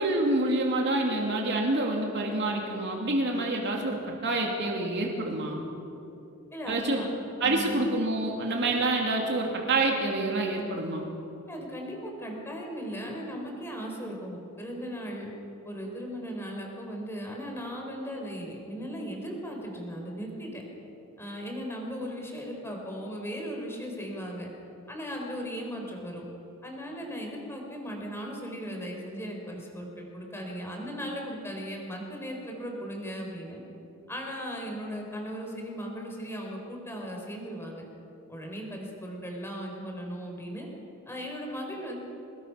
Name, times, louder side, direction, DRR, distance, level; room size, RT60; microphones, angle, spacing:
voice 1, 0.0-5.6 6.7-7.0 7.4-11.1, right 2 dB, 55° right, 0 dB, 2.7 m, -27 dB
voice 2, 6.5-7.1 7.4-7.7 11.5-15.3 15.6-20.6 21.2-24.5 24.9-26.3 26.6-33.6 34.1-37.8 38.3-40.7 41.1-42.0, equal, 10° left, 0 dB, 4.0 m, -37 dB
23.5 x 19.5 x 5.8 m, 2.9 s
head